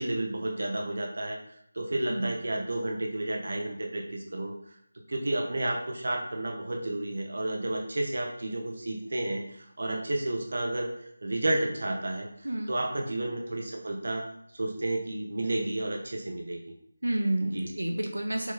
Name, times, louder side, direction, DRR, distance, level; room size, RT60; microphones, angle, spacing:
voice 1, 0.0-4.8 5.1-14.2 14.5-16.6 17.4-17.7, right 1 dB, 50° right, 2 dB, 1.5 m, -31 dB
voice 2, 17.0-18.5, right 1 dB, 65° right, 3 dB, 1.6 m, -30 dB
7.3 x 6.5 x 4.3 m, 0.72 s
figure-of-eight pair, 165°, 0 cm